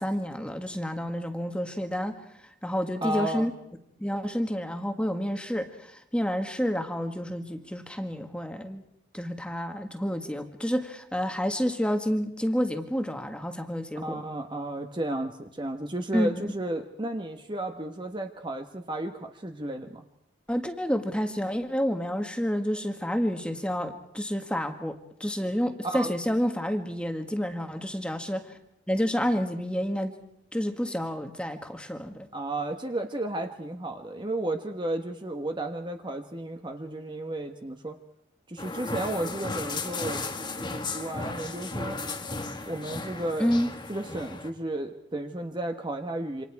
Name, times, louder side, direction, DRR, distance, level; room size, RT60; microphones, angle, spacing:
voice 1, 0.0-2.2 2.6-3.5 4.0-8.8 9.1-14.2 16.1-16.5 20.5-28.6 28.9-30.2 30.5-32.3 43.4-43.7, equal, 5° left, 6 dB, 1.6 m, -29 dB
voice 2, 3.0-3.5 14.0-20.0 25.8-26.1 32.3-38.0 38.5-40.2 40.6-42.0 42.7-43.5 43.9-46.4, right 1 dB, 25° right, 5 dB, 1.2 m, -33 dB
sound 1, 38.6-44.5, left 3 dB, 25° left, 1.6 m, -35 dB
28.0 x 26.5 x 4.7 m, 0.77 s
head